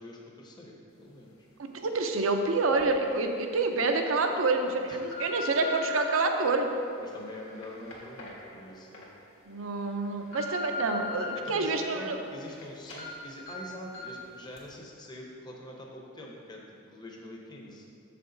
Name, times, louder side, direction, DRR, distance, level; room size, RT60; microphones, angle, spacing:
voice 1, 0.0-1.4 4.9-5.0 7.0-9.2 11.4-16.6 16.9-17.9, left 1 dB, 20° left, -1 dB, 0.7 m, -45 dB
voice 2, 1.6-6.7 9.5-12.2, right 3 dB, 80° right, 5 dB, 0.7 m, -27 dB
sound 1, 2.8-2.9 3.5-3.8 4.5-6.1 6.7-9.0 9.5-9.6 10.0-11.3 11.7-12.6 12.9-13.1 13.5-13.6 13.9-14.2 14.6-14.7, left 2 dB, 80° left, 1.7 m, -40 dB
7.0 x 6.7 x 3.9 m, 2.5 s
head